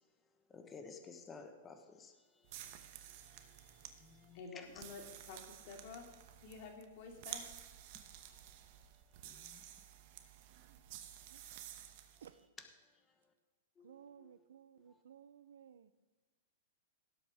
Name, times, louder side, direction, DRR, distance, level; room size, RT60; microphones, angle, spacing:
voice 1, 0.5-4.8 9.2-9.6 12.2-12.3 12.6-12.7 13.8-14.4 14.9-15.0, left 4 dB, 15° left, 5 dB, 1.2 m, -56 dB
sound 1, 2.4-12.3, right 11 dB, 50° right, 1.1 m, -52 dB
voice 2, 4.3-6.0 6.4-7.5, left 4 dB, 50° left, 2 dB, 2.6 m, -50 dB
voice 3, 13.8-15.9, right 8 dB, 85° right, 14 dB, 0.7 m, -57 dB
18.0 x 7.9 x 3.6 m, 1.3 s
hypercardioid pair, 145°, 0 cm